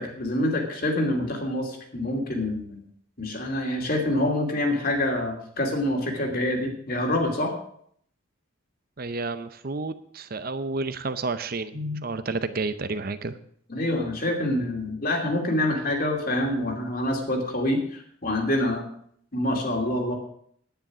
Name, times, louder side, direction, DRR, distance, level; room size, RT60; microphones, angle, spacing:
voice 1, 0.0-2.8 3.2-7.5 11.7-12.0 13.7-18.8 19.3-20.1, left 1 dB, 45° left, 2 dB, 2.7 m, -26 dB
voice 2, 9.0-11.7 12.0-13.4, right 3 dB, 45° right, 11 dB, 0.6 m, -30 dB
10.5 x 9.8 x 6.1 m, 0.63 s
head